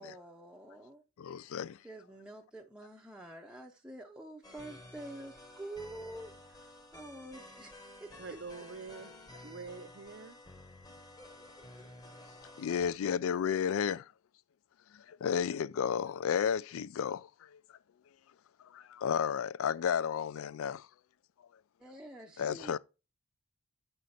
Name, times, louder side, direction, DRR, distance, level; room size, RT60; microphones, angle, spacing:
voice 1, 0.0-1.0 1.8-6.7 6.9-8.4 21.8-22.8, right 1 dB, 5° right, 0.6 m, -47 dB
voice 2, 1.2-1.8 12.6-14.1 14.9-17.6 18.7-20.9 22.4-22.8, left 7 dB, 70° left, 0.3 m, -32 dB
sound 1, 4.4-12.9, left 1 dB, 20° left, 1.0 m, -52 dB
voice 3, 8.2-9.1 9.4-10.4, right 4 dB, 50° right, 0.5 m, -45 dB
7.9 x 5.1 x 4.1 m
head